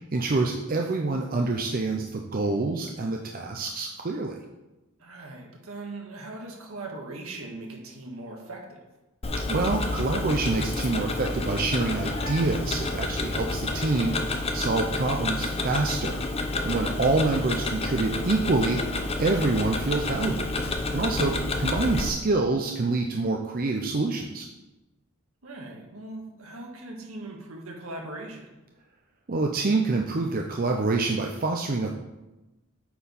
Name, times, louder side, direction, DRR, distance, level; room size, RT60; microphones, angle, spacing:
voice 1, 0.1-4.4 9.5-16.2 16.6-20.5 20.9-24.5 29.3-31.9, right 3 dB, 40° right, 2 dB, 0.6 m, -26 dB
voice 2, 5.0-8.8 20.9-21.2 25.4-28.5, right 2 dB, 70° right, 1 dB, 1.6 m, -40 dB
Tick-tock, 9.2-22.1, left 2 dB, 25° left, 0.6 m, -29 dB
8.7 x 4.6 x 5.4 m, 1.0 s
head